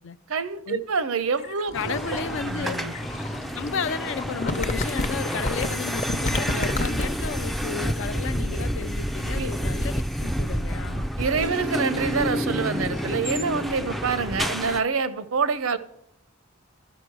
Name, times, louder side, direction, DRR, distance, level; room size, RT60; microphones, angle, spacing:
voice 1, 0.3-2.9 9.3-9.5 11.2-15.8, right 5 dB, 80° right, 0.7 m, -27 dB
sound 1, 1.4-7.3, left 1 dB, 35° left, 0.7 m, -30 dB
sound 2, 1.7-5.0 6.5-10.3 11.2-14.2, equal, 80° left, 1.1 m, -42 dB
voice 2, 1.7-2.8 3.5-11.1, left 6 dB, 65° left, 0.4 m, -33 dB
sound 3, 1.7-14.8, equal, ahead, 0.3 m, -29 dB
12.5 x 6.0 x 4.6 m
head